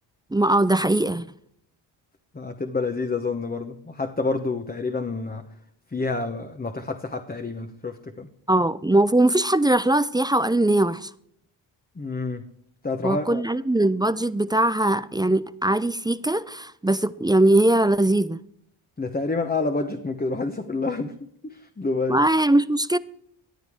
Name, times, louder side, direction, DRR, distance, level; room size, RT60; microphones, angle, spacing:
voice 1, 0.3-1.3 8.5-11.1 13.0-18.4 22.1-23.0, right 1 dB, 10° right, 0.4 m, -21 dB
voice 2, 2.3-5.4 5.9-8.3 12.0-12.4 12.8-13.4 19.0-21.2 21.4-22.2, left 3 dB, 20° left, 1.0 m, -28 dB
14.5 x 9.6 x 3.6 m
cardioid pair, 60°, 48 cm